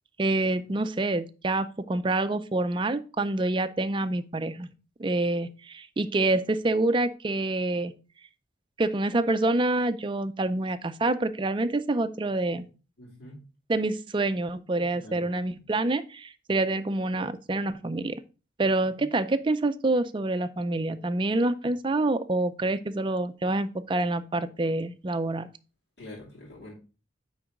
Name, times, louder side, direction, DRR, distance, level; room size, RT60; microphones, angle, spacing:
voice 1, 0.2-4.7 5.0-7.9 8.8-12.7 13.7-18.2 18.6-25.5, right 2 dB, 25° right, 11 dB, 0.4 m, -27 dB
voice 2, 13.0-13.4 14.8-15.7 19.0-19.1 26.0-26.7, left 1 dB, 60° left, -4 dB, 2.6 m, -46 dB
9.6 x 3.9 x 3.6 m, 0.34 s
head